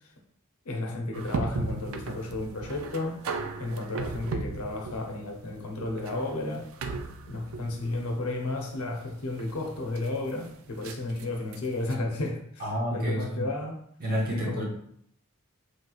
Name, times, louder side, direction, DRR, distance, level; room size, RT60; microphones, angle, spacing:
voice 1, 0.6-3.3 3.6-6.7 7.3-13.8 14.3-14.6, left 2 dB, 80° left, 1 dB, 0.7 m, -33 dB
sound 1, 1.1-11.9, right 4 dB, 70° right, 0.3 m, -37 dB
voice 2, 12.6-13.5 14.0-14.6, equal, 40° right, -3 dB, 0.9 m, -29 dB
3.1 x 2.9 x 2.3 m, 0.67 s
head